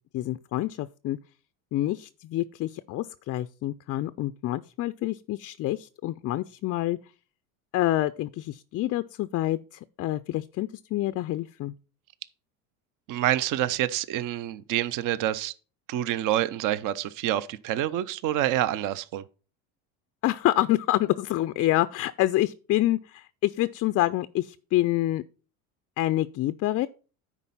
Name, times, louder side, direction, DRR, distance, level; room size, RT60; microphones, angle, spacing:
voice 1, 0.1-1.2 1.7-7.0 7.7-11.7 20.2-25.2 26.0-26.9, left 15 dB, 35° left, 0.4 m, -27 dB
voice 2, 13.1-15.5 15.9-19.2, right 12 dB, 50° right, 0.7 m, -27 dB
9.9 x 4.2 x 5.6 m
supercardioid pair, 90°, 42 cm